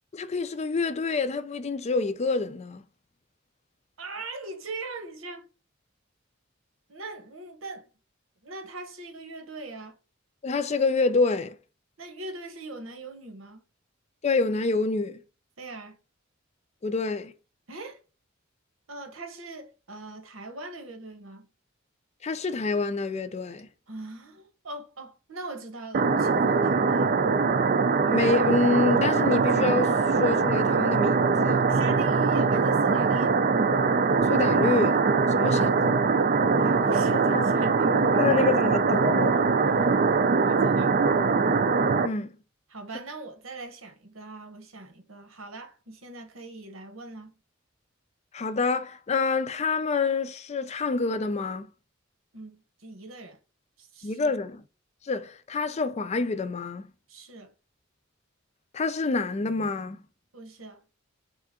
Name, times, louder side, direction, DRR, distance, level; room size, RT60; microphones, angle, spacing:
voice 1, 0.1-2.8 10.4-11.6 14.2-15.2 16.8-17.3 22.2-23.7 28.1-31.6 34.2-35.0 35.4-35.9 36.8-36.9 37.3-37.5 38.2-39.4 42.0-42.3 48.3-51.7 54.0-54.6 55.0-56.9 58.7-60.0, left 3 dB, 35° left, 0.4 m, -27 dB
voice 2, 4.0-5.5 6.9-7.9 8.4-10.0 12.0-13.6 15.6-16.0 17.7-18.0 18.9-21.5 23.9-27.2 31.7-33.4 35.4-35.7 36.6-38.5 39.7-39.9 40.4-41.0 42.7-47.3 52.3-53.4 53.8-54.3 57.1-57.5 60.3-60.8, right 2 dB, 85° right, 1.1 m, -41 dB
sound 1, 25.9-42.1, right 4 dB, 45° right, 0.4 m, -22 dB
3.7 x 3.4 x 3.6 m
head